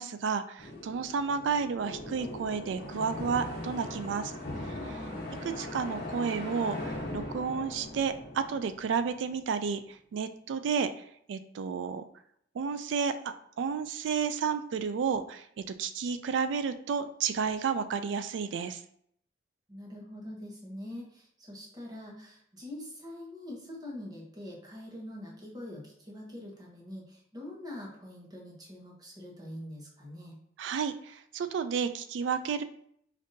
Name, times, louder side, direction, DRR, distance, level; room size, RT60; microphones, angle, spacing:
voice 1, 0.0-4.3 4.6-5.0 5.6-10.9 11.3-12.0 12.5-15.5 15.8-18.8 30.6-32.6, right 6 dB, 70° right, 11 dB, 0.3 m, -31 dB
sound 1, 0.6-9.4, left 1 dB, 55° left, 1.1 m, -40 dB
voice 2, 19.7-30.4, left 1 dB, 20° right, -2 dB, 0.9 m, -44 dB
5.1 x 2.6 x 2.6 m, 0.68 s
head